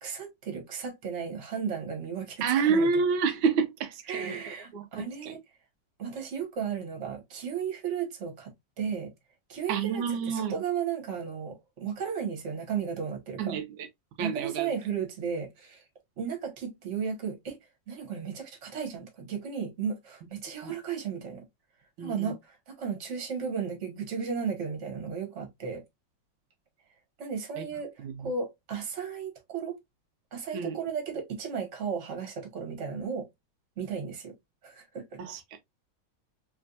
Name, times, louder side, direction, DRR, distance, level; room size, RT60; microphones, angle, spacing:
voice 1, 0.0-3.0 4.1-5.4 6.0-9.1 9.5-13.6 14.2-15.8 16.2-17.6 17.9-21.4 22.0-25.8 27.2-29.7 30.3-33.3 33.8-34.3 34.6-35.2, right 6 dB, 40° right, 1.4 m, -34 dB
voice 2, 2.4-4.4 4.7-4.8 5.2-5.3 9.7-10.5 13.4-13.6 14.2-14.7 20.6-20.7 22.0-22.3 27.6-27.7 28.0-28.1 30.5-30.8 35.2-35.4, right 5 dB, 85° right, 1.4 m, -28 dB
3.4 x 3.1 x 2.5 m
omnidirectional pair, 2.1 m